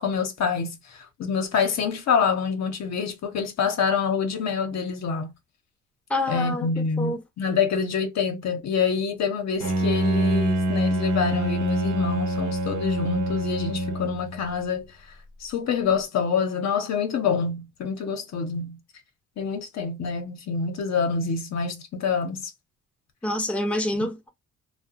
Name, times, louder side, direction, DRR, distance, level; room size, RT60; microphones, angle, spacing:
voice 1, 0.0-5.3 6.3-14.9 15.4-18.8 19.4-22.5, left 6 dB, 60° left, 0.9 m, -26 dB
voice 2, 6.1-7.2 23.2-24.3, left 1 dB, 5° left, 0.7 m, -27 dB
Bowed string instrument, 9.6-14.6, right 1 dB, 75° right, 0.9 m, -25 dB
2.3 x 2.2 x 2.7 m
cardioid pair, 90°, 30 cm